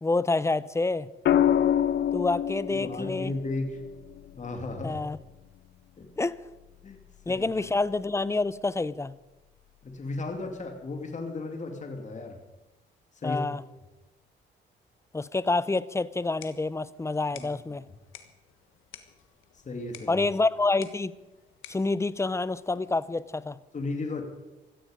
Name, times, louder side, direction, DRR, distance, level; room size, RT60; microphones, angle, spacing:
voice 1, 0.0-1.1 2.1-3.3 4.8-5.2 6.2-6.4 7.3-9.1 13.2-13.6 15.1-17.8 20.1-21.1 21.7-23.6, left 3 dB, 15° left, 18 dB, 0.6 m, -27 dB
sound 1, 1.3-5.4 7.1-7.5, left 10 dB, 65° left, 0.6 m, -27 dB
voice 2, 2.7-3.8 4.3-5.0 6.0-6.1 6.8-7.0 7.3-7.4 9.8-12.4 13.2-13.4 17.3-17.5 19.7-20.2 23.7-24.2, left 3 dB, 35° left, 4 dB, 2.5 m, -34 dB
sound 2, 16.1-23.1, left 10 dB, 80° left, 1.5 m, -53 dB
16.5 x 14.5 x 5.1 m, 1.1 s
cardioid pair, 90°, 20 cm